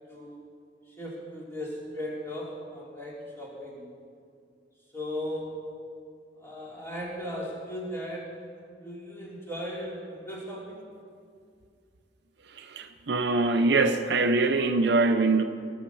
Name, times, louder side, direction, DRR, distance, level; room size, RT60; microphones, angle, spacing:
voice 1, 0.1-0.4 0.9-3.9 4.9-5.7 6.4-8.4 8.8-10.9, equal, 15° left, -5 dB, 3.1 m, -37 dB
voice 2, 12.5-15.4, right 3 dB, 65° right, 8 dB, 0.6 m, -23 dB
18.0 x 6.5 x 7.0 m, 2.3 s
head